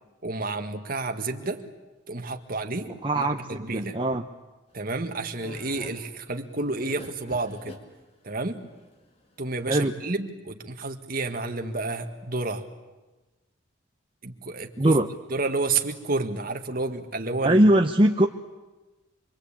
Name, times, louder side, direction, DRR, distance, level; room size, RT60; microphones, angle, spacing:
voice 1, 0.2-1.6 2.1-4.0 4.7-7.8 8.2-8.6 9.4-12.7 14.2-15.0 15.3-17.7, right 3 dB, 45° right, 6 dB, 1.9 m, -30 dB
voice 2, 3.0-4.2 9.7-9.9 14.8-15.1 17.4-18.3, right 1 dB, 25° right, 4 dB, 0.8 m, -21 dB
sound 1, 4.7-9.9, left 2 dB, 30° left, 2.4 m, -46 dB
26.5 x 23.0 x 8.8 m, 1.2 s
head